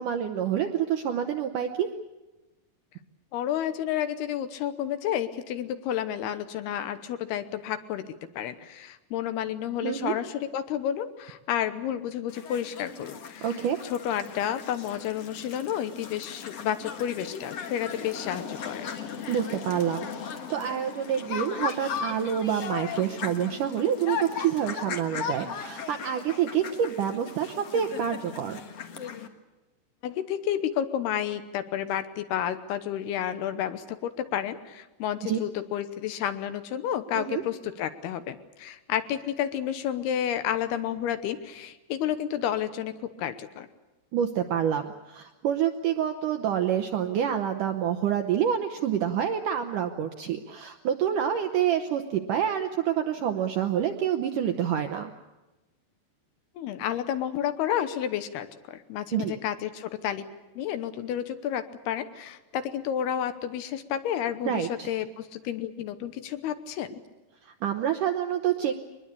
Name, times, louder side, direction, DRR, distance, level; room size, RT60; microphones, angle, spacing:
voice 1, 0.0-1.9 9.8-10.1 13.4-13.8 19.3-28.6 35.2-35.4 37.1-37.4 44.1-55.1 59.1-59.4 64.5-64.9 67.4-68.8, right 9 dB, 75° right, 6 dB, 1.9 m, -27 dB
voice 2, 3.3-8.1 8.4-13.6 13.9-18.9 30.0-43.7 56.6-60.2 60.6-67.0, left 10 dB, 75° left, 10 dB, 2.9 m, -31 dB
sound 1, 12.3-29.3, left 7 dB, 55° left, 1.7 m, -37 dB
23.0 x 21.0 x 8.4 m, 1.1 s
omnidirectional pair, 4.9 m